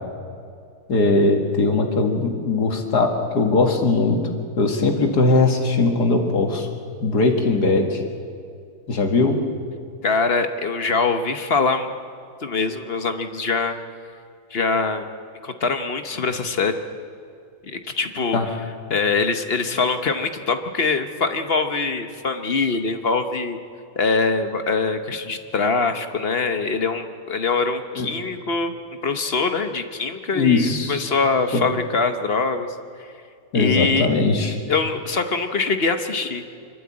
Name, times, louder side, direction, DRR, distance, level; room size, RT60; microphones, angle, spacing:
voice 1, 0.9-4.2 4.6-6.7 7.0-8.0 8.9-9.4 18.3-18.5 27.9-28.1 30.3-31.1 31.5-31.6 33.5-34.6, left 3 dB, 70° left, 3 dB, 2.4 m, -20 dB
voice 2, 10.0-11.9 12.4-13.8 14.5-15.1 15.4-16.8 17.6-18.4 18.9-23.6 24.0-28.8 29.0-33.1 33.5-34.1 34.7-36.4, left 4 dB, 45° left, 8 dB, 1.0 m, -23 dB
25.0 x 12.5 x 8.6 m, 2.3 s
omnidirectional pair, 1.8 m